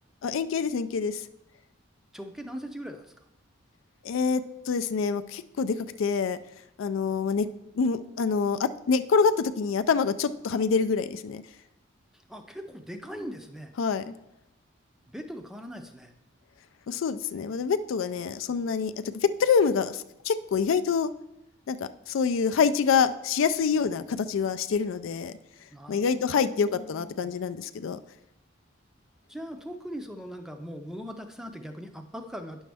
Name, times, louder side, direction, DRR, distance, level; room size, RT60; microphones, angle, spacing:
voice 1, 0.2-1.2 4.0-6.4 6.8-7.5 7.8-11.4 13.8-14.2 16.9-21.1 21.7-21.8 22.1-25.3 25.9-28.0, left 5 dB, 80° left, 11 dB, 0.4 m, -26 dB
voice 2, 2.1-3.1 12.3-13.7 15.1-16.1 25.7-27.3 29.3-32.6, equal, ahead, 6 dB, 0.5 m, -40 dB
9.4 x 6.3 x 3.4 m, 0.88 s
head